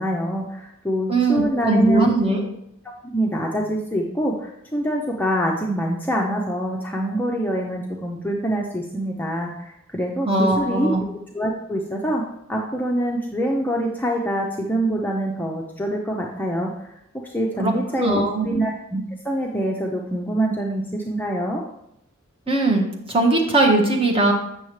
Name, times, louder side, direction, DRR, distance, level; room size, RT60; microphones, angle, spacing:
voice 1, 0.0-2.1 2.8-10.9 11.3-12.2 12.5-16.7 17.2-21.6, right 1 dB, 10° left, -1 dB, 0.5 m, -25 dB
voice 2, 1.1-2.4 10.2-11.0 17.6-18.5 22.5-24.3, right 2 dB, 25° right, -1 dB, 1.3 m, -20 dB
8.2 x 6.4 x 3.1 m, 0.80 s
head